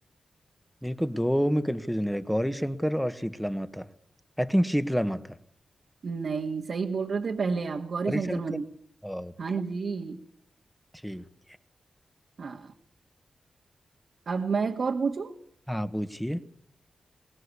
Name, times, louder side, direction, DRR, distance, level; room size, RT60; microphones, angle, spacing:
voice 1, 0.8-3.9 4.4-5.3 8.0-8.6 9.0-9.3 11.0-11.2 15.7-16.4, equal, ahead, 1.4 m, -28 dB
voice 2, 6.0-8.6 9.4-10.2 12.4-12.7 14.3-15.3, right 5 dB, 65° right, 1.8 m, -30 dB
23.0 x 19.5 x 8.5 m
wide cardioid pair, 90°, 0 cm